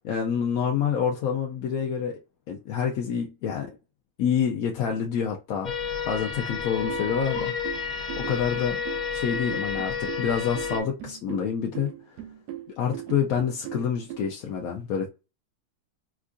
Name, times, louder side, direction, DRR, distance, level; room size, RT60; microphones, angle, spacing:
voice 1, 0.0-2.2 2.5-3.7 4.2-5.7 6.1-7.5 7.9-8.8 9.1-11.9 12.8-15.1, left 7 dB, 70° left, 1.0 m, -27 dB
sound 1, 5.6-10.8, left 6 dB, 50° left, 0.5 m, -31 dB
sound 2, 6.5-14.2, right 12 dB, 80° right, 1.2 m, -39 dB
4.5 x 2.3 x 2.5 m
omnidirectional pair, 1.7 m